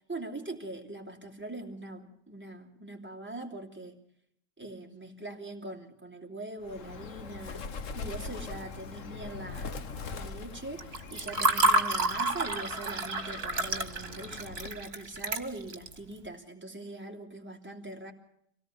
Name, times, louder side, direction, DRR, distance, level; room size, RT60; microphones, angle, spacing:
voice 1, 0.1-3.9 4.6-7.7 7.9-9.9 10.1-18.1, right 2 dB, 10° right, 0 dB, 2.9 m, -42 dB
Bird, 6.6-14.9, left 4 dB, 85° left, 1.5 m, -42 dB
Water / Fill (with liquid), 10.8-15.9, right 2 dB, 55° right, 1.9 m, -29 dB
25.5 x 18.0 x 6.6 m, 0.74 s
omnidirectional pair, 1.3 m